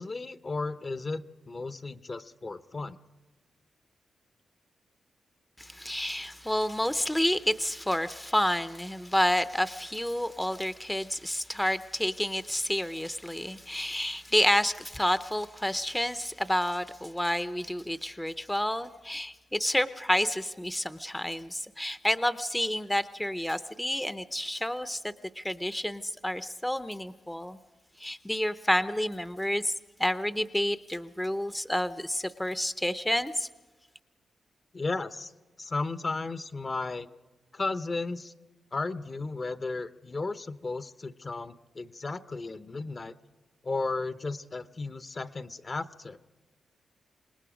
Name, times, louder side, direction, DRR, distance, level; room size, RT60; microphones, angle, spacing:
voice 1, 0.0-3.0 34.7-35.3 35.6-37.1 37.5-38.3 38.7-43.1 43.6-46.2, left 3 dB, 40° left, 12 dB, 0.8 m, -34 dB
voice 2, 5.6-27.6 28.0-29.7 30.0-33.5, left 1 dB, 10° left, 12 dB, 0.6 m, -29 dB
26.0 x 20.5 x 5.1 m, 1.2 s
cardioid pair, 80°, 0 cm